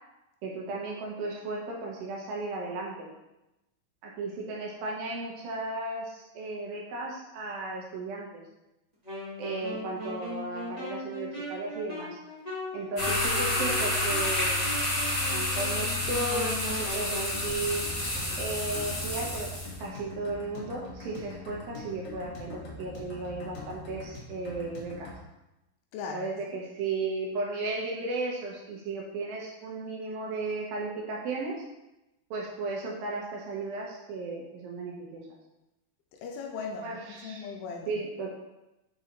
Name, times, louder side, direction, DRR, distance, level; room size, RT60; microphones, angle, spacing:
voice 1, 0.4-3.1 4.0-8.4 9.4-12.2 12.7-14.7 15.3-17.8 18.4-19.5 19.8-25.1 26.1-31.6 32.3-35.2 36.8-37.5 37.9-38.3, right 3 dB, 75° right, -2 dB, 2.5 m, -35 dB
Wind instrument woodwind instrument, 9.0-17.4, left 1 dB, 20° right, 1.0 m, -38 dB
sound 1, 13.0-19.8, left 1 dB, 40° left, 0.8 m, -29 dB
sound 2, 17.3-25.1, left 3 dB, 60° left, 1.7 m, -43 dB
voice 2, 25.9-26.3 36.2-37.9, left 5 dB, 80° left, 1 dB, 2.5 m, -38 dB
6.2 x 4.0 x 4.0 m, 0.95 s
omnidirectional pair, 4.5 m